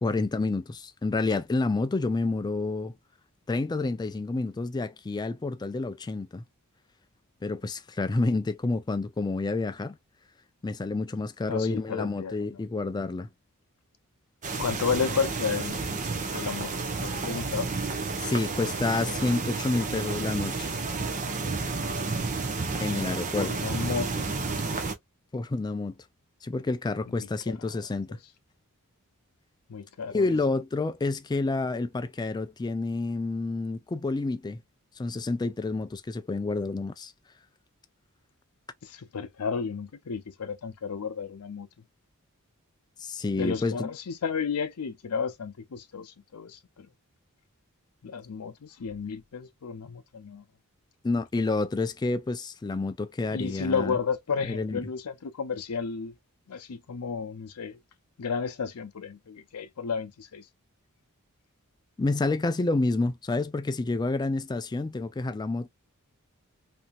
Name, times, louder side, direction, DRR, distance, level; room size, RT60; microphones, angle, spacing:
voice 1, 0.0-2.9 3.5-6.4 7.4-10.0 10.6-13.3 18.2-20.7 22.8-23.5 25.3-26.0 26.4-28.2 30.1-34.6 35.0-37.1 43.0-43.9 51.0-54.0 54.4-54.8 62.0-65.7, left 3 dB, 20° left, 0.3 m, -29 dB
voice 2, 11.5-12.6 14.6-15.8 16.3-17.7 23.3-24.3 27.2-27.8 29.7-30.4 38.8-41.7 43.4-46.9 48.0-50.4 53.3-56.1 56.5-57.8 58.2-60.4, left 5 dB, 85° left, 0.6 m, -32 dB
sound 1, 14.4-24.9, right 4 dB, 35° right, 0.6 m, -31 dB
2.8 x 2.7 x 2.2 m
head